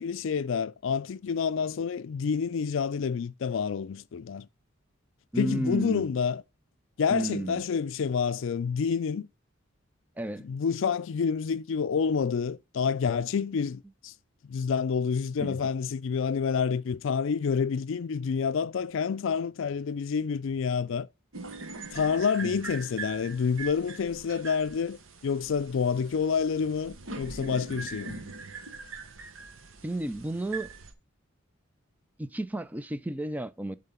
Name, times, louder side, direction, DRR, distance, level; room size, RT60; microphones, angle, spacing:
voice 1, 0.0-4.5 5.4-6.4 7.0-9.3 10.4-14.1 14.4-21.1 21.9-28.2, left 6 dB, 65° left, 0.4 m, -28 dB
voice 2, 5.3-6.0 7.1-7.6 10.2-10.4 15.4-15.6 22.4-22.6 29.8-30.7 32.2-33.7, right 1 dB, 10° right, 0.4 m, -32 dB
sound 1, 21.3-30.9, right 3 dB, 70° right, 1.1 m, -42 dB
7.3 x 3.8 x 5.6 m
head